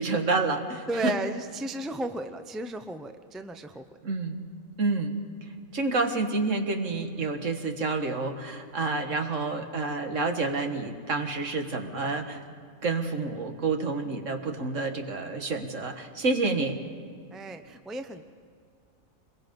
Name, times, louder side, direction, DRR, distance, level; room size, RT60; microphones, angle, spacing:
voice 1, 0.0-1.1 4.0-4.4 4.8-12.4 12.8-16.8, right 3 dB, 60° right, 5 dB, 1.9 m, -29 dB
voice 2, 0.9-3.8 17.3-18.2, right 2 dB, ahead, 8 dB, 0.6 m, -34 dB
26.5 x 22.0 x 5.4 m, 2.3 s
omnidirectional pair, 1.5 m